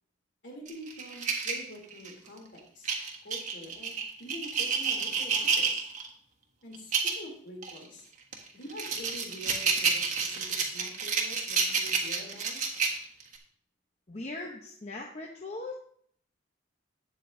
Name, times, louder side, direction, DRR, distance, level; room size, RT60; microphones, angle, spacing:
voice 1, 0.4-2.9 3.2-5.8 6.6-8.1 8.5-12.6, left 1 dB, 60° left, 0 dB, 3.1 m, -46 dB
sound 1, 0.7-2.3 2.8-6.1 6.7-7.2 7.6-7.8 8.3-13.4, right 5 dB, 40° right, 1.4 m, -29 dB
voice 2, 14.1-15.7, left 2 dB, 35° left, 1 dB, 0.8 m, -39 dB
12.5 x 8.6 x 2.7 m, 0.62 s
head